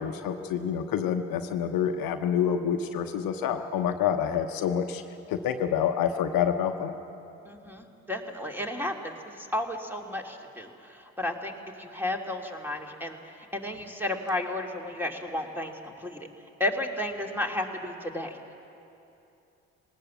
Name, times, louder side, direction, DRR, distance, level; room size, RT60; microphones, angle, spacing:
voice 1, 0.0-5.0 5.3-6.9, left 8 dB, 65° left, 7 dB, 1.0 m, -27 dB
voice 2, 7.4-16.3 16.6-18.4, left 1 dB, 5° right, 1 dB, 2.5 m, -33 dB
19.5 x 18.5 x 7.4 m, 2.8 s
hypercardioid pair, 50°, 37 cm